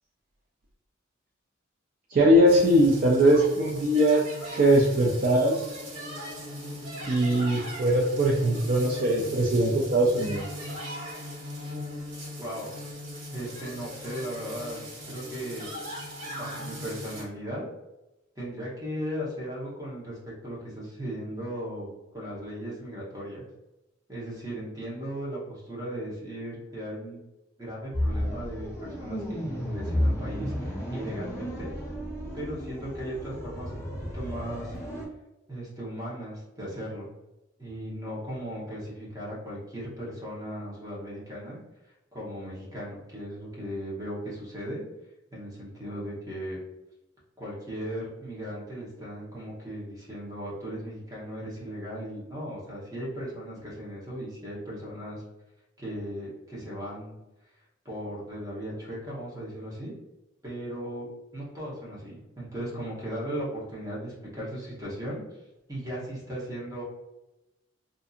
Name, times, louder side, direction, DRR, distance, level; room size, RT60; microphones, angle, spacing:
voice 1, 2.1-4.2 4.6-5.7 7.1-10.4, right 1 dB, 45° right, -2 dB, 0.4 m, -21 dB
sound 1, 2.5-17.2, equal, 80° right, 1.4 m, -39 dB
voice 2, 12.4-12.8 13.3-15.7 16.4-17.6 18.4-20.2 20.4-23.5 24.1-27.2 27.6-31.7 32.3-34.8 35.5-37.1 37.6-41.6 42.1-44.8 45.3-46.6 47.4-55.2 55.8-57.2 57.8-59.9 60.4-61.0 61.3-65.2 65.7-66.8, equal, 20° right, -6 dB, 0.9 m, -37 dB
sound 2, 27.9-35.0, equal, 15° left, 0.6 m, -32 dB
2.6 x 2.6 x 2.4 m, 0.97 s
head